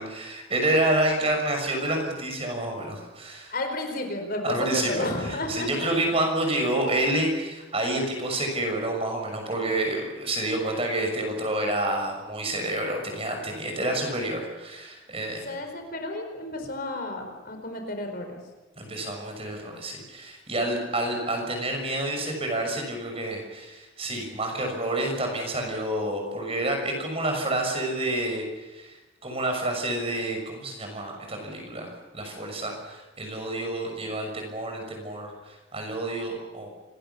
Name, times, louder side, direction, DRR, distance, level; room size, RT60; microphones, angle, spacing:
voice 1, 0.0-3.5 4.4-15.5 18.8-28.9 29.2-36.7, right 1 dB, 30° right, 3 dB, 6.4 m, -28 dB
voice 2, 3.5-5.7 15.4-18.4, left 2 dB, 45° left, 5 dB, 4.7 m, -32 dB
27.0 x 20.5 x 7.1 m, 1.1 s
head